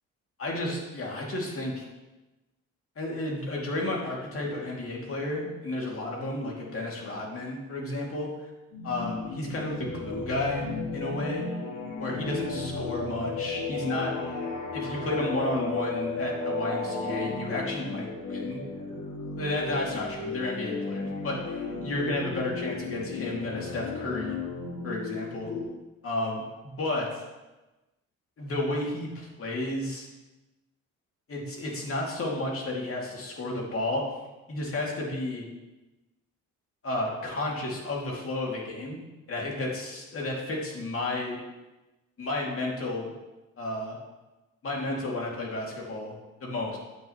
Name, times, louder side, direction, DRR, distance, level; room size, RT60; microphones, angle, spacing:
voice 1, 0.4-1.8 3.0-8.5 8.8-10.7 10.9-11.4 12.0-14.4 14.7-18.6 19.4-24.4 24.8-25.5 26.0-27.2 28.4-30.1 31.3-34.0 34.5-35.4 36.8-39.0 39.3-41.4 42.2-43.1 43.6-44.0 44.6-46.1 46.4-46.8, left 2 dB, 45° left, -2 dB, 2.5 m, -32 dB
sound 1, 8.7-25.6, left 3 dB, 80° left, 2.1 m, -34 dB
9.5 x 7.8 x 3.1 m, 1.1 s
cardioid pair, 90°, 30 cm